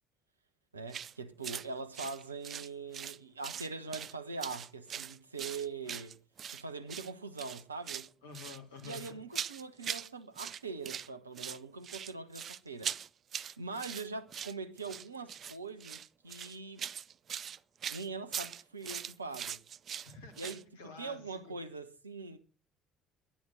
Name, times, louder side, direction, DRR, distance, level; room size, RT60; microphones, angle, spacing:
voice 1, 0.7-6.2 6.5-8.1 8.8-12.9 13.6-16.9 17.9-19.6 20.4-20.6 21.0-22.4, right 4 dB, 80° right, 0.9 m, -42 dB
sound 1, 0.9-1.1 1.4-1.7 1.9-3.2 3.4-4.1 4.4-6.6 6.9-7.1 7.4-8.1 8.3-10.1 10.4-11.1 11.4-20.6, right 8 dB, 45° right, 0.5 m, -41 dB
voice 2, 8.2-9.2 20.0-21.5, left 5 dB, 70° left, 2.5 m, -49 dB
11.5 x 10.5 x 6.3 m
figure-of-eight pair, 55°, 0 cm